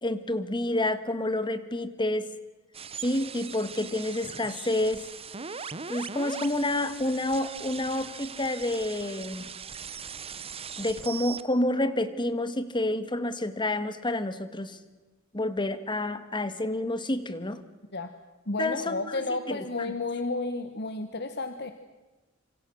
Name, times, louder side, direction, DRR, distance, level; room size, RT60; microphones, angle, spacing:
voice 1, 0.0-2.3 3.0-5.0 5.9-9.5 10.8-14.8 15.3-17.6 18.6-19.6, left 1 dB, 25° left, 12 dB, 1.7 m, -29 dB
sound 1, 2.7-11.4, right 6 dB, 30° right, 0.9 m, -40 dB
voice 2, 18.5-21.7, left 3 dB, 55° left, 8 dB, 1.5 m, -32 dB
27.5 x 26.5 x 6.4 m, 1.2 s
head